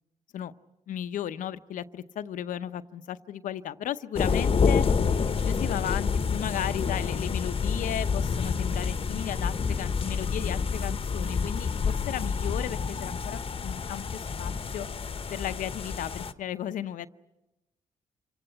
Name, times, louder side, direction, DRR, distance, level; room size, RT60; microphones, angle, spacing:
voice 1, 0.9-14.9 15.3-17.1, left 10 dB, 75° left, 12 dB, 0.8 m, -35 dB
sound 1, 4.2-16.3, left 5 dB, 45° left, 1.0 m, -28 dB
27.5 x 18.0 x 9.0 m, 1.0 s
cardioid pair, 75°, 13 cm